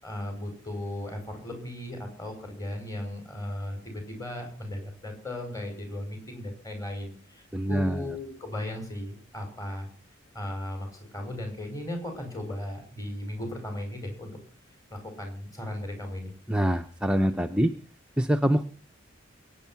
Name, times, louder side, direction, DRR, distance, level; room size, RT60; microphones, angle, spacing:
voice 1, 0.0-9.9 10.3-14.3 14.9-16.3, left 1 dB, 15° left, 4 dB, 5.6 m, -36 dB
voice 2, 7.5-8.0 16.5-17.7 18.2-18.6, equal, 5° right, 6 dB, 0.6 m, -24 dB
23.0 x 9.5 x 5.9 m, 0.41 s
head